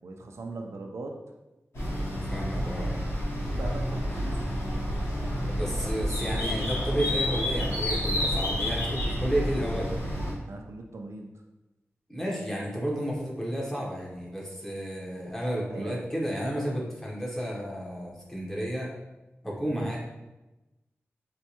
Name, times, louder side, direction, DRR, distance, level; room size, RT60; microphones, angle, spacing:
voice 1, 0.0-1.2 2.6-2.9 3.4-4.4 10.5-11.3 15.7-16.0 19.7-20.0, right 2 dB, 80° right, 1 dB, 0.4 m, -40 dB
sound 1, 1.7-10.3, equal, 70° left, 1.1 m, -29 dB
voice 2, 2.3-2.9 5.3-9.9 12.1-18.9 19.4-20.0, equal, 10° left, -4 dB, 0.8 m, -32 dB
4.4 x 2.2 x 2.8 m, 1.0 s
wide cardioid pair, 105°, 5 cm